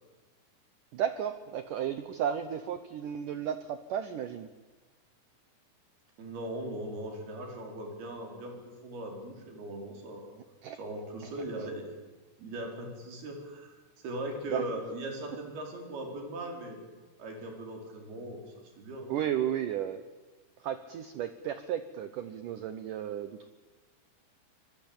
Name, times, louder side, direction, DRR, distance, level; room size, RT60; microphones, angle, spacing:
voice 1, 0.9-4.5 10.6-10.8 11.2-11.3 14.5-14.6 19.1-20.0 20.6-23.5, right 9 dB, 80° right, 11 dB, 1.9 m, -33 dB
voice 2, 6.2-8.6 8.8-10.3 10.7-11.9 12.4-16.8 17.2-19.1, right 1 dB, 60° right, 3 dB, 6.3 m, -39 dB
24.5 x 21.5 x 8.8 m, 1.3 s
omnidirectional pair, 5.1 m